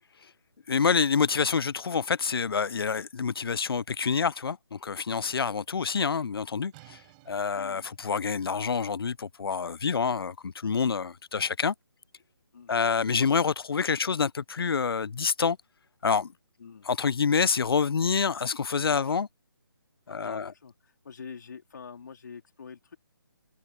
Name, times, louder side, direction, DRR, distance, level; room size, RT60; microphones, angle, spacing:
voice 1, 0.7-7.0 7.3-11.7 12.7-15.6 16.0-16.3 16.9-19.3 20.1-20.5, left 5 dB, 85° left, 0.5 m, -27 dB
sound 1, 6.7-12.3, right 25 dB, 20° right, 5.3 m, -60 dB
voice 2, 7.5-7.9 12.5-12.8 16.6-16.9 18.9-19.2 20.1-23.0, left 6 dB, 55° left, 3.7 m, -46 dB
hypercardioid pair, 165°, 12 cm